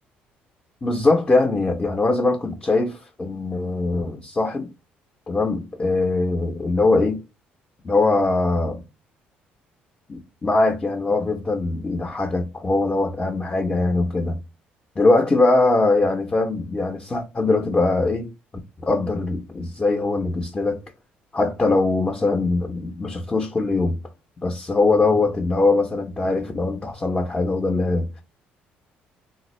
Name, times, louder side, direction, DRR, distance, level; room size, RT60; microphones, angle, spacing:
voice 1, 0.8-4.7 5.3-7.2 7.8-8.8 10.1-14.4 15.0-18.3 18.8-20.8 21.3-24.0 24.4-28.2, left 3 dB, 20° left, 0.5 m, -21 dB
3.3 x 2.3 x 2.9 m
cardioid pair, 110°, 4 cm